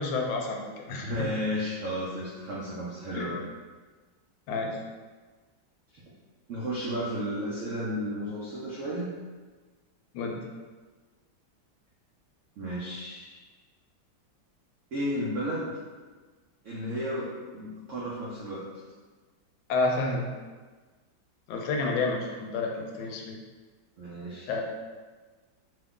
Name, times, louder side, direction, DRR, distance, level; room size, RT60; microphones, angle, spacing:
voice 1, 0.0-1.1 3.1-3.2 4.5-4.8 10.1-10.4 19.7-20.3 21.5-23.4 24.5-24.6, left 3 dB, 80° left, 1 dB, 1.3 m, -29 dB
voice 2, 1.0-3.4 5.9-6.0 6.5-9.1 12.6-13.4 14.9-15.8 16.6-18.6 24.0-24.5, equal, 85° right, -7 dB, 0.6 m, -33 dB
3.2 x 2.3 x 3.5 m, 1.4 s
omnidirectional pair, 2.1 m